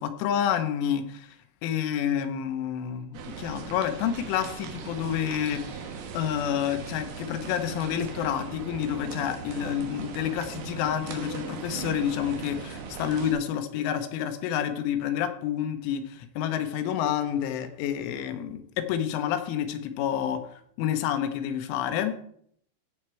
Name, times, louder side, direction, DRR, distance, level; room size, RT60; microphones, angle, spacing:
voice 1, 0.0-1.4 1.6-5.9 6.1-22.2, left 9 dB, 80° left, 8 dB, 3.2 m, -29 dB
sound 1, 3.1-13.3, right 5 dB, 65° right, 2.8 m, -39 dB
14.5 x 7.3 x 4.5 m, 0.66 s
omnidirectional pair, 5.9 m